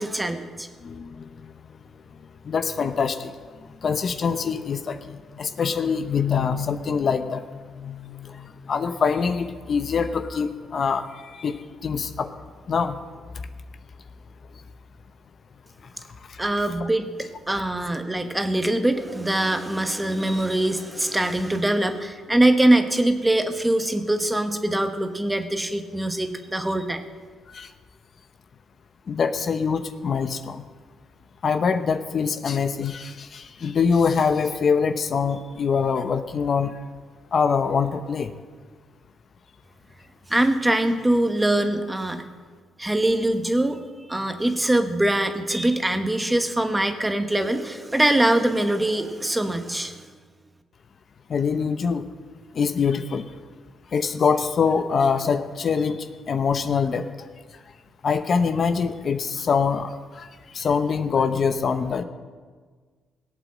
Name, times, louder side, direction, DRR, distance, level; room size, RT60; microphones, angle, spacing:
voice 1, 0.0-0.7 16.4-27.0 40.3-42.3 42.8-43.8 44.1-50.1, right 1 dB, 10° right, 7 dB, 1.3 m, -23 dB
voice 2, 0.8-1.8 2.4-3.3 3.6-12.3 12.7-13.0 15.8-15.9 16.3-16.4 27.5-27.7 29.1-30.6 31.4-36.8 37.3-38.3 51.3-52.0 52.5-53.3 53.9-57.3 58.0-62.0, left 6 dB, 50° left, 9 dB, 0.8 m, -24 dB
18.0 x 8.3 x 7.5 m, 1.5 s
cardioid pair, 90°, 0 cm